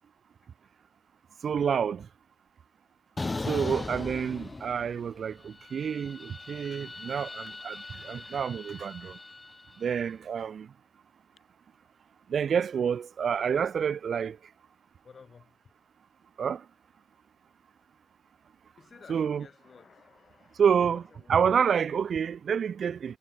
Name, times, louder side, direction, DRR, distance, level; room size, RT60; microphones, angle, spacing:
voice 1, 1.4-2.1 3.5-9.2 9.8-10.7 12.3-14.4 16.4-16.6 19.1-19.5 20.6-23.2, right 7 dB, 50° right, 0.7 m, -28 dB
sound 1, 3.2-5.1 5.4-9.8, left 3 dB, 20° left, 0.9 m, -38 dB
voice 2, 15.0-15.6 18.8-21.4, left 5 dB, 40° left, 6.9 m, -54 dB
cardioid pair, 90°, 0 cm